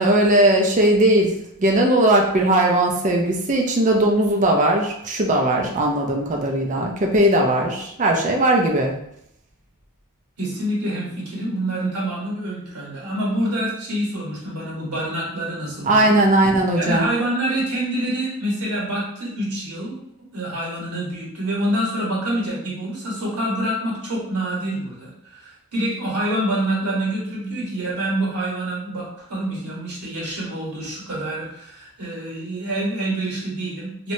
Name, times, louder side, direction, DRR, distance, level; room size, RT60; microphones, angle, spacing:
voice 1, 0.0-1.3 1.6-8.9 15.8-17.1, right 1 dB, 35° right, 1 dB, 0.5 m, -18 dB
voice 2, 10.4-16.2 16.7-19.9 20.2-34.1, right 1 dB, 90° right, -5 dB, 1.5 m, -26 dB
3.1 x 2.9 x 2.7 m, 0.74 s
head